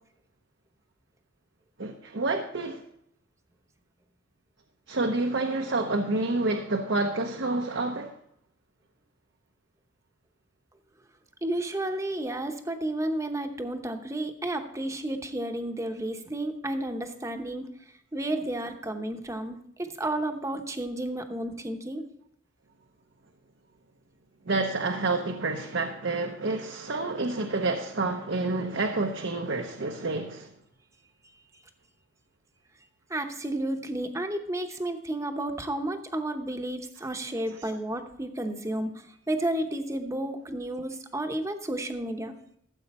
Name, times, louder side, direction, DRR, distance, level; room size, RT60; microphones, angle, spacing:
voice 1, 1.8-2.8 4.9-8.1 24.5-30.5, right 2 dB, 70° right, 0.8 m, -28 dB
voice 2, 11.4-17.7 18.1-22.1 33.1-42.4, right 1 dB, 15° right, 0.8 m, -32 dB
14.0 x 7.8 x 4.2 m
head